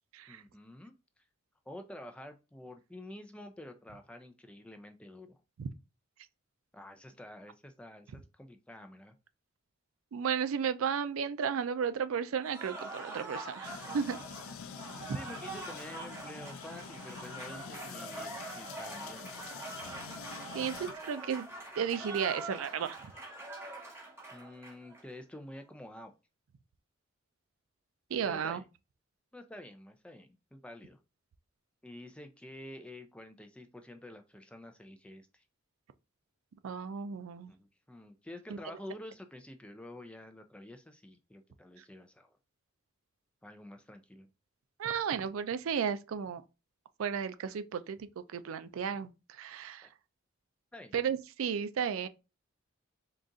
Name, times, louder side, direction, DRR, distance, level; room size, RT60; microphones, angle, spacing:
voice 1, 0.3-0.9 1.7-5.4 6.7-9.1 15.1-19.4 24.3-26.1 28.2-28.7 29.3-31.0 31.8-35.4 37.5-42.4 43.4-44.3 49.8-49.9 50.7-50.9, left 1 dB, 5° left, 0.3 m, -49 dB
voice 2, 10.1-14.2 20.5-21.5 21.8-23.0 28.1-28.6 36.6-37.5 44.8-46.4 47.0-49.1 49.4-49.9 50.9-52.1, right 7 dB, 80° right, 0.4 m, -33 dB
Cheering / Applause, 12.4-25.0, right 2 dB, 10° right, 0.9 m, -44 dB
sound 1, 13.6-21.5, left 7 dB, 85° left, 0.4 m, -47 dB
3.8 x 2.4 x 3.7 m
head